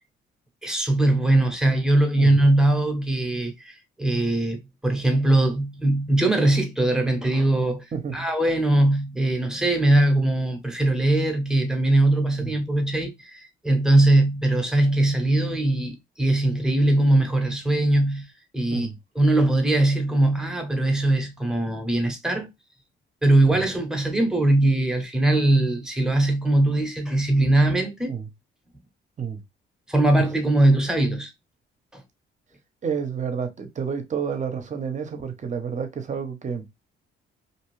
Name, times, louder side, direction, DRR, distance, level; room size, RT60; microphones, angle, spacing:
voice 1, 0.6-18.3 18.5-18.9 19.1-22.5 23.2-28.1 29.9-31.3 31.9-32.0, right 1 dB, 5° right, 0.8 m, -21 dB
voice 2, 32.8-36.6, right 6 dB, 40° right, 0.7 m, -29 dB
2.6 x 2.3 x 3.1 m
cardioid pair, 90°, 20 cm